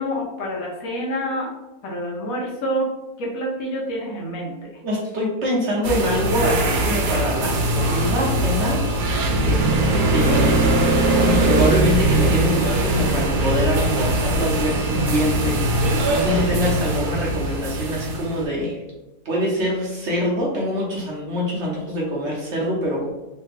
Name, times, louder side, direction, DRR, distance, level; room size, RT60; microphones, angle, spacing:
voice 1, 0.0-1.5 1.8-2.9 3.2-4.6, equal, 70° left, -3 dB, 1.1 m, -27 dB
voice 2, 4.8-8.8 9.1-9.8 10.1-18.8 19.2-23.1, equal, 55° right, -3 dB, 0.9 m, -25 dB
sound 1, 5.8-18.4, right 1 dB, 85° right, 1.1 m, -21 dB
3.2 x 2.2 x 3.2 m, 1.0 s
omnidirectional pair, 1.6 m